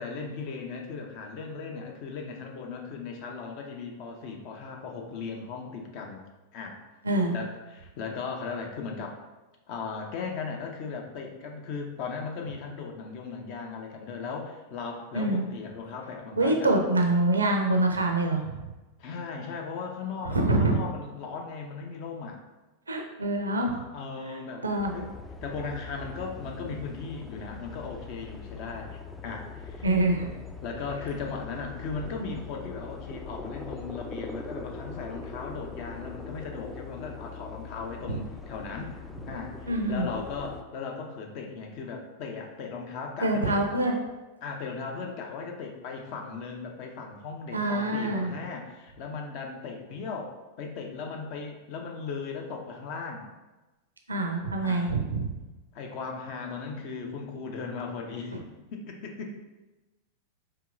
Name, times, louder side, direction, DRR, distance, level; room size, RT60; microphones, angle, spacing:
voice 1, 0.0-6.3 6.5-6.8 7.3-9.2 9.7-16.7 19.0-22.4 23.9-24.6 24.9-25.1 25.4-29.9 30.2-30.3 30.6-38.9 39.3-43.6 44.4-53.3 54.6-54.9 55.7-58.4 58.7-59.3, left 5 dB, 45° left, 2 dB, 0.6 m, -37 dB
voice 2, 7.0-7.4 15.1-15.4 16.4-18.6 20.3-20.8 22.9-23.8 24.6-24.9 29.8-30.2 38.1-38.2 39.7-40.1 43.2-44.0 47.5-48.3 54.1-55.3, right 2 dB, 75° right, 3 dB, 0.5 m, -25 dB
sound 1, 24.8-40.6, left 4 dB, 5° left, 0.3 m, -41 dB
4.6 x 2.9 x 2.5 m, 1.1 s
figure-of-eight pair, 90°, 0 cm